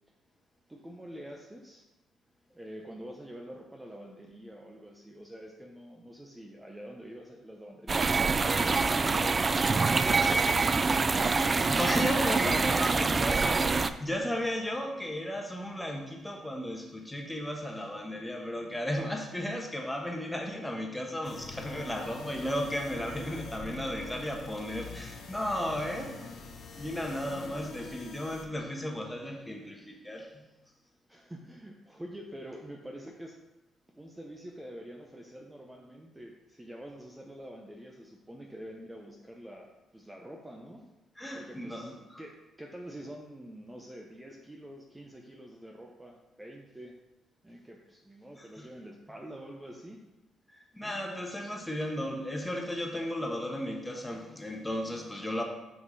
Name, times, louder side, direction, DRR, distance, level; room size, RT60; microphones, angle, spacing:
voice 1, 0.7-1.8 2.5-11.6 12.3-12.7 31.1-33.4 33.9-40.9 41.3-46.9 47.4-50.0 50.8-51.0, equal, 10° right, 0 dB, 0.7 m, -46 dB
sound 1, 7.9-13.9, right 4 dB, 30° right, 0.3 m, -25 dB
voice 2, 11.8-26.3 26.8-30.4 41.2-42.2 48.4-48.6 50.7-55.4, left 1 dB, 5° left, 1 dB, 1.2 m, -34 dB
sound 2, 21.2-28.5, left 4 dB, 60° left, 0.8 m, -45 dB
5.8 x 5.5 x 4.0 m, 1.0 s
cardioid pair, 90°, 0 cm